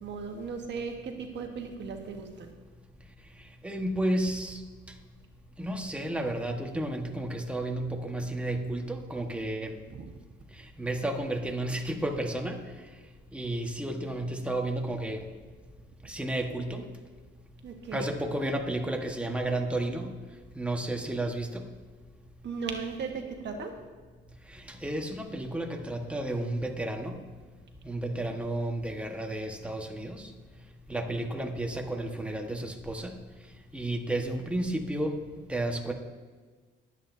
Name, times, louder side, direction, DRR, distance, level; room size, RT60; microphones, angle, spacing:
voice 1, 0.0-2.5 9.9-10.1 17.6-18.1 22.4-23.7, right 5 dB, 65° right, 4 dB, 1.4 m, -37 dB
voice 2, 3.6-4.6 5.6-9.7 10.8-12.6 13.3-15.2 16.0-16.8 17.9-20.1 20.5-21.6 24.5-27.1 27.8-30.3 30.9-33.1 33.7-35.2 35.5-35.9, right 1 dB, 5° right, 2 dB, 1.4 m, -32 dB
22.5 x 8.2 x 2.7 m, 1.4 s
cardioid pair, 90°, 20 cm